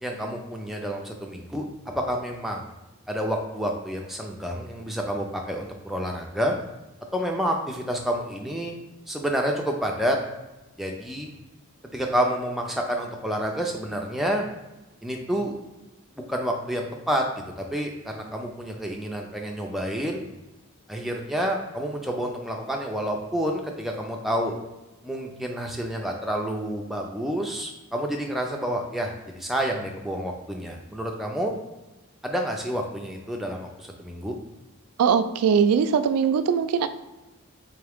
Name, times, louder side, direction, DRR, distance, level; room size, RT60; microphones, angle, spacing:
voice 1, 0.0-2.7 3.1-6.5 7.1-8.8 9.1-10.2 10.8-11.3 11.9-14.5 15.0-15.5 16.3-17.2 17.6-20.2 20.9-24.6 25.0-31.5 32.2-34.4, equal, ahead, 0 dB, 0.3 m, -29 dB
voice 2, 35.0-36.9, right 7 dB, 85° right, 10 dB, 0.3 m, -21 dB
3.5 x 3.2 x 3.5 m, 1.0 s
head